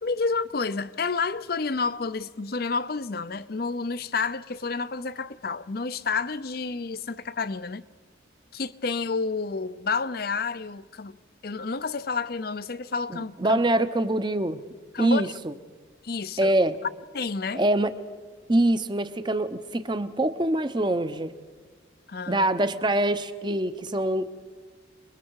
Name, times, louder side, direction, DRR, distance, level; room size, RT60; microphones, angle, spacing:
voice 1, 0.0-7.8 8.5-11.2 11.4-13.6 14.9-15.3 16.0-16.5 17.1-17.6 22.1-22.5, left 4 dB, 55° left, 0.6 m, -30 dB
voice 2, 13.1-14.6 15.0-15.5 16.4-16.7 17.5-17.9 18.5-21.3 22.3-24.2, right 1 dB, 25° right, 0.8 m, -24 dB
29.0 x 21.5 x 4.7 m
head